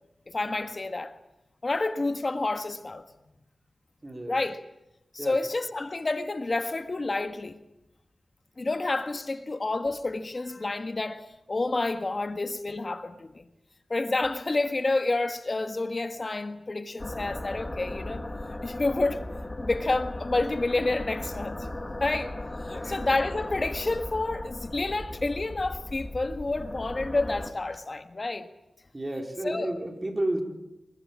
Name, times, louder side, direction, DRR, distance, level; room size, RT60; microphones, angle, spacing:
voice 1, 0.3-1.2 1.6-3.0 4.3-4.6 5.1-7.5 8.6-13.4 13.9-18.2 18.6-19.2 19.6-21.7 22.0-22.3 22.6-28.5 29.2-29.7, left 2 dB, 40° left, 1.7 m, -29 dB
voice 2, 4.0-4.3 5.2-5.4 22.7-23.0 28.9-30.4, right 1 dB, 30° right, 4.7 m, -31 dB
sound 1, 17.0-27.5, left 1 dB, 25° left, 2.7 m, -37 dB
24.0 x 22.0 x 8.7 m
cardioid pair, 60°, 0 cm